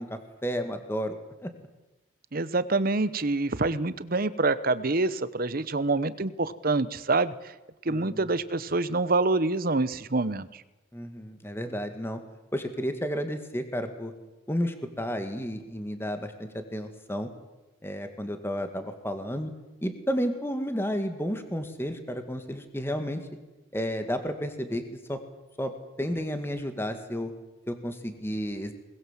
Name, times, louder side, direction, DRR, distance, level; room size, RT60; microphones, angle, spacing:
voice 1, 0.0-1.5 7.9-8.3 10.9-12.2 12.5-14.1 14.5-17.3 17.8-19.5 19.8-23.2 23.7-24.8 25.1-25.2 25.6-25.7 26.0-27.3 27.7-28.7, equal, 10° left, 7 dB, 2.0 m, -32 dB
voice 2, 2.3-7.3 7.8-10.6, right 3 dB, 50° right, 15 dB, 0.9 m, -26 dB
22.5 x 20.5 x 7.5 m, 1.1 s
head